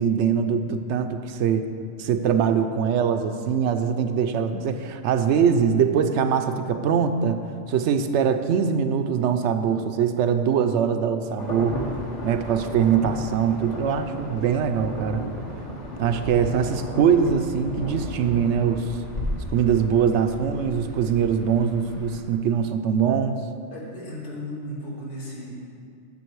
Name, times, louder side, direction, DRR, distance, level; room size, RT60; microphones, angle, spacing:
voice 1, 0.0-1.6 2.0-7.4 7.7-11.8 12.2-15.3 16.0-18.9 19.5-23.4, right 7 dB, 75° right, 8 dB, 0.8 m, -22 dB
Insect / Thunder / Rain, 11.4-22.2, equal, 35° left, 1.3 m, -34 dB
voice 2, 23.7-25.5, left 1 dB, 85° left, -5 dB, 2.2 m, -36 dB
9.6 x 7.0 x 4.6 m, 2.4 s
omnidirectional pair, 1.2 m